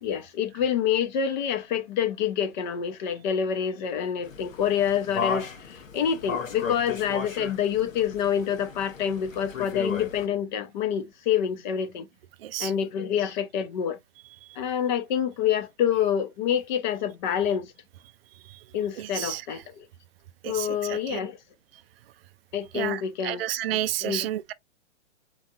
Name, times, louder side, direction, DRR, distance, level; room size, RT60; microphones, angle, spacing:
voice 1, 0.0-12.1 12.6-14.0 14.6-17.7 18.7-19.9 20.4-21.4 22.5-24.3, left 8 dB, 35° left, 0.8 m, -27 dB
sound 1, 4.2-10.3, left 6 dB, 85° left, 1.1 m, -35 dB
voice 2, 12.4-12.7 18.4-18.6 19.0-19.6 20.4-21.2 22.7-24.5, right 13 dB, 50° right, 0.4 m, -31 dB
4.0 x 3.1 x 2.4 m
hypercardioid pair, 130°, 39 cm